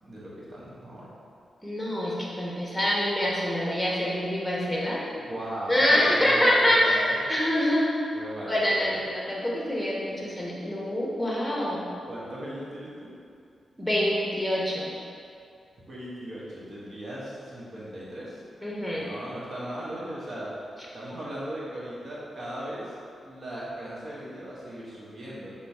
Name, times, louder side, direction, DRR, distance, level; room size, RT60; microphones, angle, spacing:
voice 1, 0.0-1.1 5.1-7.4 8.1-9.0 12.1-13.1 15.9-18.4 18.9-20.5 20.9-22.9 23.2-25.5, right 1 dB, 55° right, -7 dB, 1.2 m, -37 dB
voice 2, 1.6-5.0 5.7-7.8 8.5-11.8 13.8-14.9 18.6-19.1, left 1 dB, ahead, -6 dB, 1.1 m, -25 dB
3.9 x 2.3 x 4.6 m, 2.4 s
cardioid pair, 55°, 0 cm